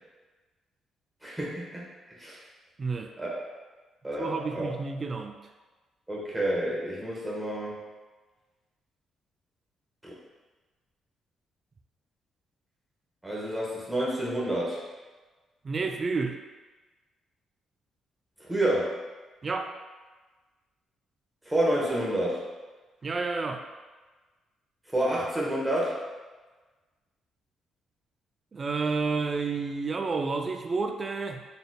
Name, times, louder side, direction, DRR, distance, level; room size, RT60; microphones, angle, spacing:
voice 1, 1.2-1.8 2.2-2.4 3.2-3.4 4.0-4.7 6.1-7.8 10.0-10.1 13.2-14.8 18.4-19.0 21.4-22.5 24.9-26.0, right 1 dB, 10° right, -5 dB, 1.1 m, -29 dB
voice 2, 2.8-3.1 4.2-5.4 15.6-16.4 19.4-19.7 23.0-23.7 28.5-31.5, right 4 dB, 35° right, 5 dB, 0.3 m, -30 dB
4.1 x 3.4 x 2.3 m, 1.3 s
cardioid pair, 90°, 0 cm